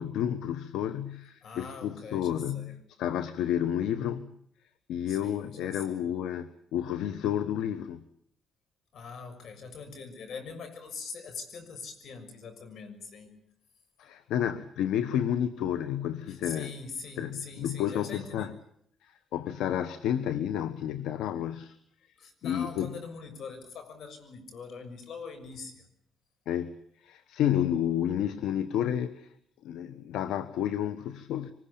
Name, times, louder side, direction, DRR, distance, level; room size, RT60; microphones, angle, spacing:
voice 1, 0.0-4.3 4.9-8.0 14.0-16.7 17.2-18.5 19.0-21.8 22.4-22.9 26.5-26.8 27.0-29.3 29.6-31.5, left 10 dB, 85° left, 12 dB, 1.2 m, -31 dB
voice 2, 1.4-2.7 5.1-6.0 8.9-13.3 16.3-18.5 22.2-25.9, left 5 dB, 65° left, 9 dB, 6.6 m, -43 dB
25.0 x 20.0 x 8.7 m, 0.71 s
cardioid pair, 90°, 0 cm